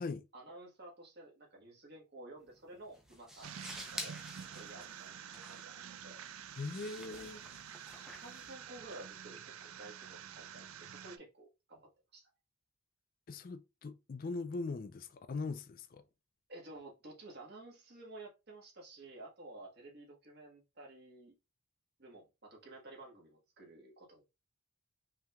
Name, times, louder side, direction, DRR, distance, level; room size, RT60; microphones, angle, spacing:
voice 1, 0.3-3.5 3.9-4.2 4.4-5.1 5.5-6.3 8.0-12.3 16.5-21.3 22.0-24.2, right 2 dB, 45° right, 1.5 m, -53 dB
sound 1, 2.4-9.2, equal, ahead, 0.6 m, -50 dB
sound 2, 3.4-11.2, right 8 dB, 70° right, 0.4 m, -49 dB
voice 2, 6.6-7.4 13.3-16.0, left 3 dB, 40° left, 0.3 m, -40 dB
5.5 x 3.3 x 2.3 m
head